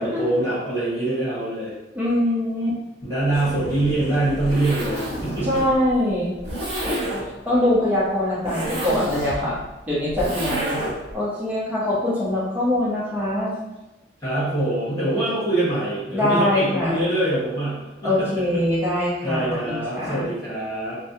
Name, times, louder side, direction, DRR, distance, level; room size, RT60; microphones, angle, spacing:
voice 1, 0.0-1.7 3.0-5.6 14.2-18.6 19.2-21.0, right 1 dB, 20° left, -13 dB, 1.5 m, -24 dB
voice 2, 1.9-2.8 5.4-6.3 6.8-7.0 7.4-9.6 9.9-10.8 11.1-13.5 16.1-17.0 18.0-20.2, left 1 dB, 10° right, -8 dB, 0.8 m, -23 dB
Zipper (clothing), 3.2-11.1, right 1 dB, 30° right, 1.1 m, -30 dB
3.2 x 2.2 x 2.7 m, 1.0 s
head